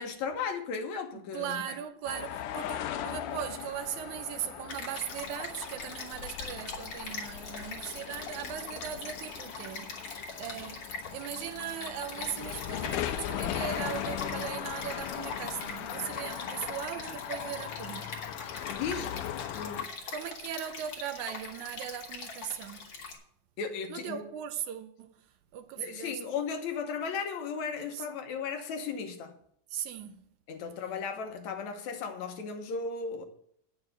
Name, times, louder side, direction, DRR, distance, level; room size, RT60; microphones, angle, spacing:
voice 1, 0.0-1.8 18.7-19.1 19.5-19.9 23.6-24.2 25.8-29.3 30.5-33.3, left 5 dB, 70° left, 2.2 m, -35 dB
voice 2, 1.3-18.1 20.1-22.9 23.9-25.1 25.5-26.2 27.9-28.0 29.7-30.2, right 10 dB, 75° right, 2.0 m, -39 dB
sound 1, 2.1-19.9, left 11 dB, 85° left, 2.2 m, -39 dB
Stream, 4.7-23.2, left 4 dB, 50° left, 2.5 m, -42 dB
9.6 x 7.0 x 6.5 m
omnidirectional pair, 3.6 m